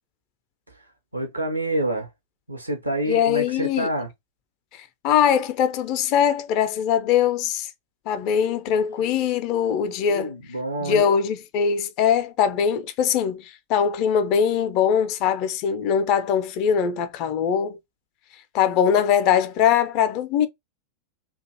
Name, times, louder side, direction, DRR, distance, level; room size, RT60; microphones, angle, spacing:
voice 1, 1.1-2.1 2.5-4.1 10.1-11.2, right 1 dB, 85° right, 0.7 m, -27 dB
voice 2, 3.1-3.9 4.7-7.7 8.1-10.3 10.8-17.8 18.5-20.5, left 8 dB, 40° left, 0.4 m, -22 dB
2.4 x 2.3 x 2.7 m
figure-of-eight pair, 90°, 0 cm